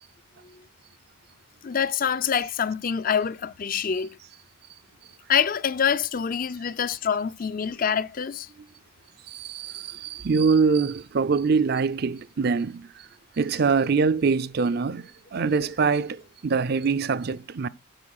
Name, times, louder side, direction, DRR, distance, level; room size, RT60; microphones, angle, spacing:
voice 1, 1.6-4.1 5.3-8.5, left 7 dB, 40° left, 0.4 m, -25 dB
voice 2, 9.3-13.1 13.4-15.0 15.3-17.7, right 5 dB, 50° right, 0.4 m, -24 dB
8.9 x 4.6 x 6.3 m
head